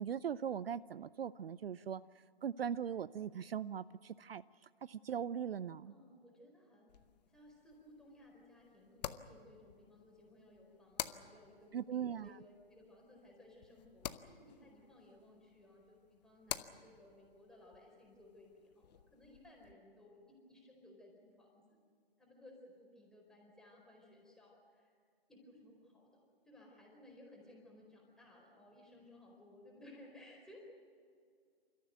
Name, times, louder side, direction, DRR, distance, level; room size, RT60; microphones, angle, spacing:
voice 1, 0.0-2.0 2.4-5.9 11.7-12.4, right 8 dB, 65° right, 18 dB, 0.5 m, -40 dB
voice 2, 5.9-7.0 7.2-21.6 22.2-24.9 25.3-30.6, left 1 dB, ahead, -2 dB, 4.3 m, -60 dB
sound 1, 6.9-19.7, left 9 dB, 40° left, 0.9 m, -50 dB
29.0 x 14.0 x 9.2 m, 2.2 s
figure-of-eight pair, 140°, 31 cm